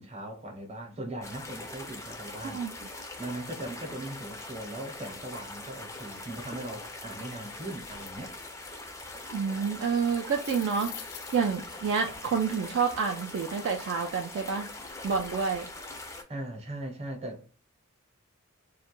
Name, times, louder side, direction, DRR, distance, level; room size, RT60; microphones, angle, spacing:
voice 1, 0.0-2.8 3.2-8.3 16.3-17.4, right 1 dB, 30° right, 0.7 m, -39 dB
sound 1, 1.2-16.2, left 2 dB, 15° left, 0.4 m, -42 dB
voice 2, 9.3-10.9 11.3-14.7 15.0-15.7, right 5 dB, 55° right, 0.3 m, -28 dB
sound 2, 10.1-11.7, left 10 dB, 75° left, 0.4 m, -43 dB
2.2 x 2.1 x 2.9 m
head